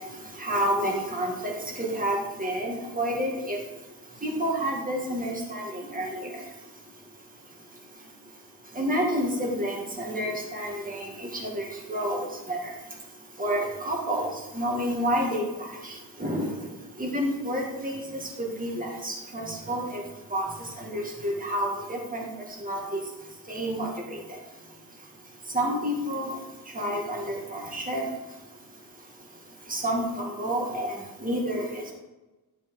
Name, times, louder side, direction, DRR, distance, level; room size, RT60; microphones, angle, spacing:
voice 1, 0.4-3.6 4.2-6.3 8.8-11.1 11.4-12.6 13.4-14.3 14.5-15.4 16.2-16.5 17.0-20.0 20.3-20.5 20.8-22.3 22.6-23.0 23.5-24.2 25.5-26.4 26.7-28.1 29.7-30.9 31.2-31.9, equal, 20° right, -2 dB, 2.1 m, -29 dB
11.5 x 5.7 x 4.9 m, 1.1 s
wide cardioid pair, 165°, 40 cm